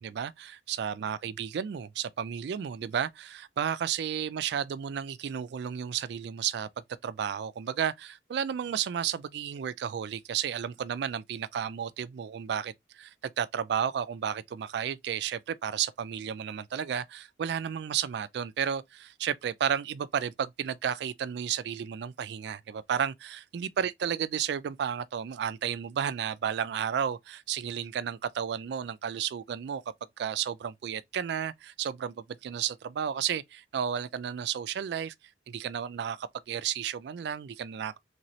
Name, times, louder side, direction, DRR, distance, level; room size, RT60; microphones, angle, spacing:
voice 1, 0.0-6.7 7.0-29.8 30.2-35.1 35.5-37.9, right 8 dB, 70° right, 0.3 m, -32 dB
3.3 x 2.7 x 3.0 m
head